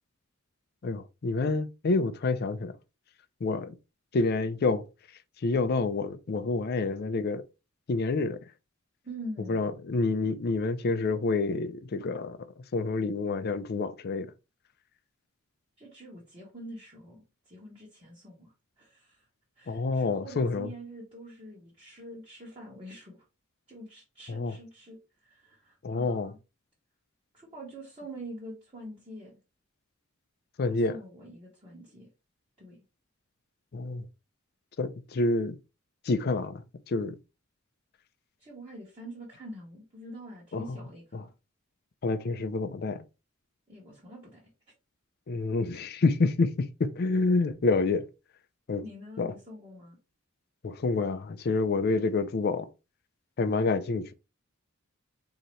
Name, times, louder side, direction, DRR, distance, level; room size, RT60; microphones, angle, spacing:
voice 1, 0.8-2.7 3.4-3.7 4.1-4.9 5.4-7.4 7.9-8.4 9.5-12.4 12.7-14.3 19.7-20.7 24.3-24.6 25.8-26.3 30.6-31.0 33.7-34.1 34.8-35.6 36.0-36.6 36.9-37.2 40.5-40.8 41.1-41.2 42.0-43.0 45.3-48.1 48.7-48.8 49.2-49.3 50.6-52.7 53.4-54.1, left 3 dB, 50° left, 0.4 m, -28 dB
voice 2, 9.0-9.8 15.8-19.2 19.6-23.2 23.7-26.4 27.3-29.3 30.7-32.1 32.6-32.8 38.4-41.3 43.7-44.4 48.8-50.0, right 1 dB, 25° right, 1.3 m, -45 dB
4.0 x 2.8 x 3.1 m
head